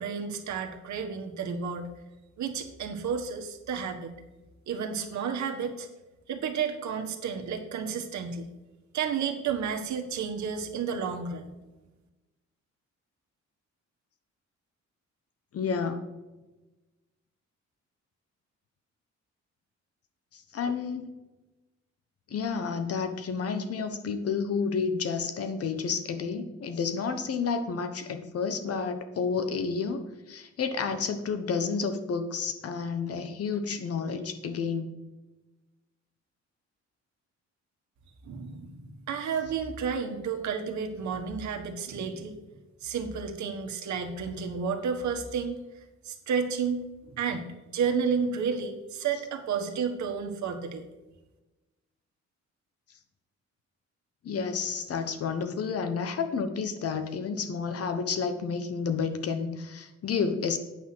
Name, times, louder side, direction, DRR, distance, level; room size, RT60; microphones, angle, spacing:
voice 1, 0.0-1.9 2.4-4.1 4.7-5.9 6.3-8.5 8.9-11.5 38.2-42.4 42.8-45.6 46.0-47.5 47.7-50.8, right 6 dB, 75° right, 4 dB, 1.5 m, -31 dB
voice 2, 15.5-16.1 20.3-21.2 22.3-30.0 30.3-35.0 54.2-60.6, left 5 dB, 55° left, 9 dB, 1.2 m, -30 dB
9.2 x 5.9 x 6.2 m, 1.1 s
cardioid pair, 145°, 29 cm